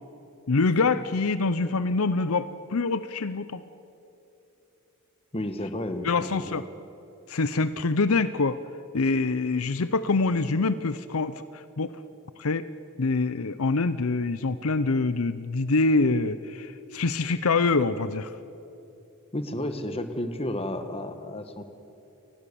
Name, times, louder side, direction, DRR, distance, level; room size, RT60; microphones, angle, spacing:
voice 1, 0.5-3.6 6.0-6.7 7.3-8.6 8.9-11.9 12.4-12.7 13.0-18.3, left 3 dB, 75° left, 13 dB, 0.7 m, -25 dB
voice 2, 5.3-6.6 19.3-21.6, left 1 dB, 25° left, 8 dB, 1.5 m, -32 dB
29.5 x 20.0 x 7.0 m, 2.8 s
head